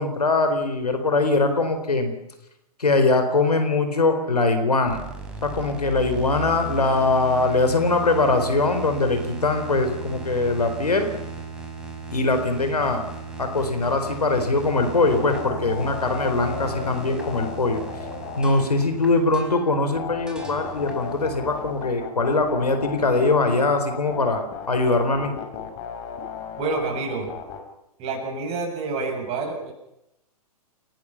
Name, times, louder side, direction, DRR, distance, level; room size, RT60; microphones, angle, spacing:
voice 1, 0.0-2.1 2.8-5.0 5.4-11.1 12.1-13.0 13.4-17.8 18.4-24.4 24.7-25.3, left 3 dB, 80° left, 7 dB, 4.3 m, -22 dB
sound 1, 4.9-22.0, right 4 dB, 5° right, 4.8 m, -37 dB
sound 2, 14.8-18.6 20.0-27.6, left 8 dB, 40° left, 4.9 m, -35 dB
voice 2, 26.6-27.3 28.0-29.7, right 3 dB, 30° right, 2 dB, 7.3 m, -28 dB
29.0 x 18.5 x 5.9 m, 0.85 s
figure-of-eight pair, 115°, 20 cm